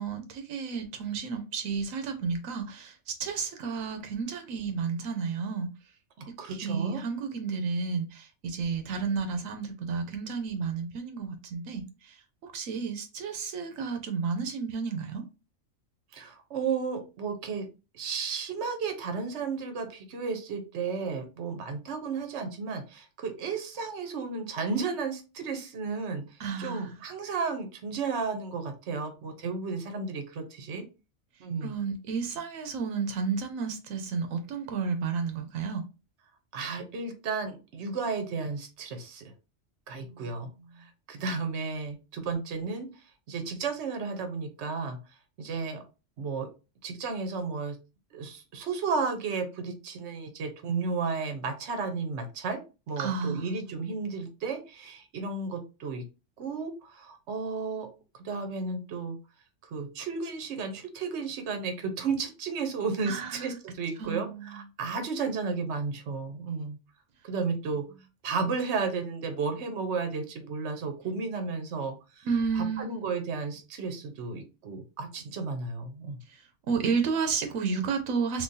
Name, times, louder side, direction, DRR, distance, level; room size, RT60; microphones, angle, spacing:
voice 1, 0.0-5.7 6.5-12.1 12.5-15.2 26.4-26.9 31.6-35.8 40.1-40.2 53.0-53.7 63.1-63.5 64.0-64.6 72.2-73.0 76.7-78.4, right 5 dB, 90° right, 1.1 m, -32 dB
voice 2, 6.2-7.0 16.1-17.7 17.9-26.2 26.6-30.8 31.4-31.7 36.5-39.3 39.9-40.5 41.1-42.9 43.3-45.0 45.4-45.8 46.2-46.5 46.8-47.7 48.1-52.6 52.9-56.0 56.4-57.9 58.2-59.2 59.7-66.8 67.2-67.8 68.2-72.3 72.5-76.2, right 4 dB, 65° right, 1.0 m, -33 dB
3.7 x 2.7 x 2.7 m
omnidirectional pair, 1.3 m